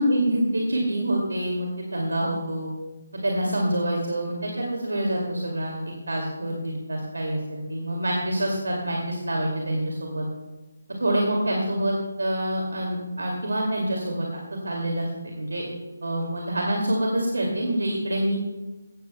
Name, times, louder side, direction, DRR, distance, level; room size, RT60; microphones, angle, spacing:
voice 1, 0.0-2.7 3.1-10.3 11.0-15.1 15.4-15.6 16.0-18.4, right 1 dB, 65° right, 0 dB, 2.3 m, -26 dB
17.0 x 13.0 x 2.2 m, 1.1 s
figure-of-eight pair, 145°, 0 cm